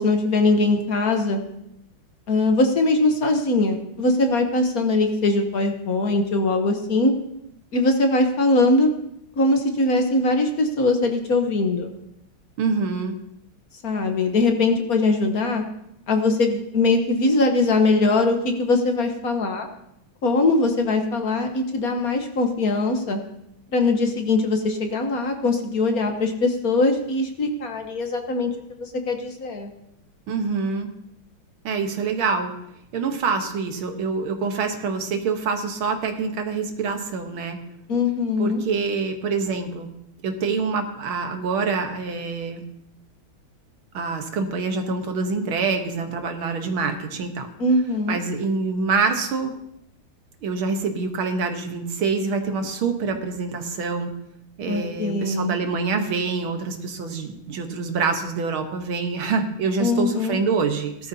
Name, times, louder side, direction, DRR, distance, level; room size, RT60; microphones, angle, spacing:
voice 1, 0.0-1.4 2.3-7.1 7.7-8.9 9.4-11.9 13.8-15.6 16.1-19.7 20.2-23.2 23.7-29.7 37.9-38.6 47.6-48.2 54.7-55.5 59.8-60.4, left 2 dB, 50° left, 5 dB, 1.4 m, -21 dB
voice 2, 12.6-13.2 30.3-30.9 31.6-32.5 32.9-37.6 38.4-39.9 40.2-42.6 43.9-47.5 48.1-49.6 50.4-54.1 54.6-61.1, right 4 dB, 80° right, 5 dB, 2.0 m, -26 dB
18.0 x 12.5 x 2.8 m, 0.80 s
omnidirectional pair, 2.2 m